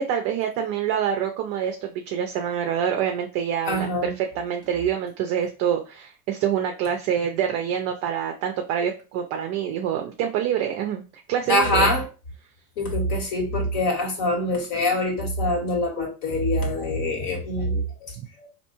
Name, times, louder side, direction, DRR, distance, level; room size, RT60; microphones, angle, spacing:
voice 1, 0.0-11.9, right 9 dB, 35° right, 4 dB, 0.4 m, -26 dB
voice 2, 3.7-4.1 11.5-12.1 12.8-18.5, left 1 dB, 55° left, 2 dB, 1.6 m, -24 dB
4.3 x 2.7 x 2.9 m, 0.33 s
supercardioid pair, 150°, 43 cm